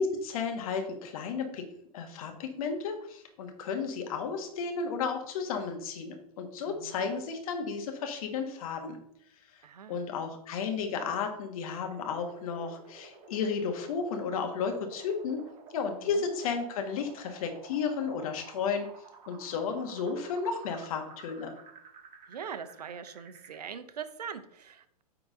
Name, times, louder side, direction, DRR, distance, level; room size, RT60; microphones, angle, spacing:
voice 1, 0.0-1.7 1.9-9.0 9.9-15.4 15.7-19.0 19.3-21.5, left 5 dB, 60° left, 4 dB, 1.5 m, -33 dB
voice 2, 6.7-7.1 9.6-10.0 16.2-16.3 22.3-25.0, right 7 dB, 80° right, 12 dB, 0.7 m, -42 dB
sound 1, 11.6-23.6, right 4 dB, 40° right, 1.6 m, -52 dB
9.2 x 3.9 x 3.7 m, 0.72 s
hypercardioid pair, 105°, 20 cm